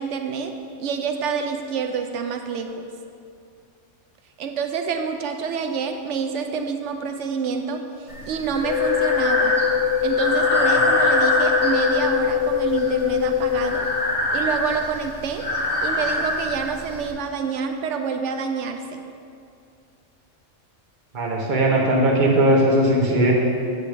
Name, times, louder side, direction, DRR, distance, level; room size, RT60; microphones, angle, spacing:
voice 1, 0.0-2.9 4.4-9.6 10.0-13.9 14.3-15.4 15.8-19.0, right 6 dB, 75° right, 5 dB, 0.9 m, -27 dB
Breathing, 8.1-17.1, left 1 dB, 30° left, 1.1 m, -24 dB
sound 1, 8.6-13.6, left 9 dB, 90° left, 2.3 m, -22 dB
voice 2, 21.1-23.3, right 1 dB, 40° right, -2 dB, 1.2 m, -18 dB
8.1 x 7.5 x 3.4 m, 2.4 s
omnidirectional pair, 1.3 m